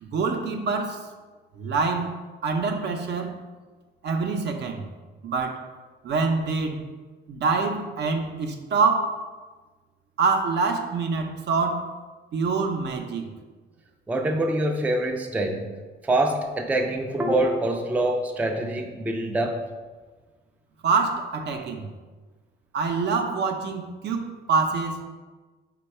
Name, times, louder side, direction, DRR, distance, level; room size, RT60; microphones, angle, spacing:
voice 1, 0.0-1.1 1.5-2.1 2.4-3.4 4.0-4.8 5.2-5.6 6.0-6.8 7.3-9.1 10.2-11.9 12.3-13.3 20.8-21.9 22.7-25.0, right 4 dB, 60° right, 4 dB, 0.5 m, -25 dB
voice 2, 14.1-15.7 16.0-19.6, right 1 dB, 10° right, 3 dB, 0.4 m, -25 dB
4.5 x 2.2 x 4.2 m, 1.3 s
cardioid pair, 90°, 20 cm